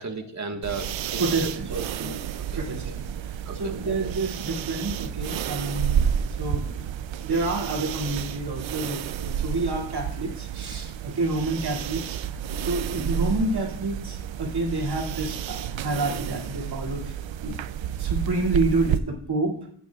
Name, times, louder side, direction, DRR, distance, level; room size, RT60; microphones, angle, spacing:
voice 1, 0.0-1.8 2.3-2.6 3.4-3.7, right 3 dB, 40° right, 4 dB, 1.5 m, -35 dB
sound 1, 0.6-19.0, right 9 dB, 85° right, 0.6 m, -30 dB
voice 2, 1.2-2.2 2.5-6.1 6.4-6.8 7.1-17.2 17.4-17.6 18.0-19.7, right 2 dB, 60° right, -1 dB, 2.5 m, -29 dB
15.0 x 9.6 x 2.3 m, 0.62 s
wide cardioid pair, 135°, 45 cm